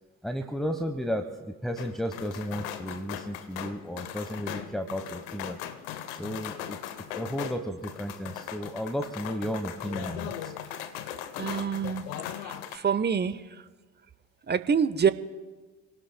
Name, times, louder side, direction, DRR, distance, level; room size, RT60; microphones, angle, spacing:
voice 1, 0.2-5.6 6.1-6.8 7.2-10.5, equal, ahead, 4 dB, 1.1 m, -33 dB
sound 1, 1.8-12.8, left 10 dB, 80° left, 0.9 m, -39 dB
voice 2, 11.4-12.0 12.4-13.6 14.5-15.1, right 7 dB, 30° right, 14 dB, 1.0 m, -26 dB
27.0 x 18.0 x 2.2 m, 1.3 s
hypercardioid pair, 50°, 36 cm